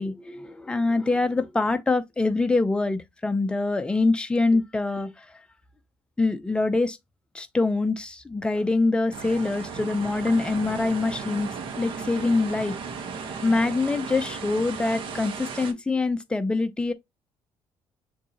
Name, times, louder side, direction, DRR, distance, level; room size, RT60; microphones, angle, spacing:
voice 1, 0.0-5.3 6.2-7.0 7.3-12.8 13.4-16.9, left 3 dB, 10° left, 0.6 m, -24 dB
sound 1, 9.1-15.7, right 5 dB, 60° right, 1.1 m, -36 dB
6.6 x 2.7 x 2.8 m
cardioid pair, 145°, 10 cm